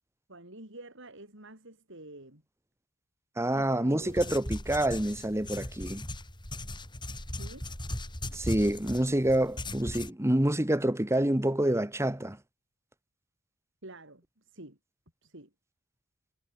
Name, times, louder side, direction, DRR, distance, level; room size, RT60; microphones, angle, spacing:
voice 1, 0.3-2.4 3.5-4.4 7.3-7.7 13.8-14.8 15.2-15.5, right 1 dB, 65° right, 6.5 m, -48 dB
voice 2, 3.4-6.0 8.3-12.4, right 1 dB, 15° right, 1.6 m, -27 dB
sound 1, 4.0-10.1, left 1 dB, 20° left, 7.8 m, -38 dB
head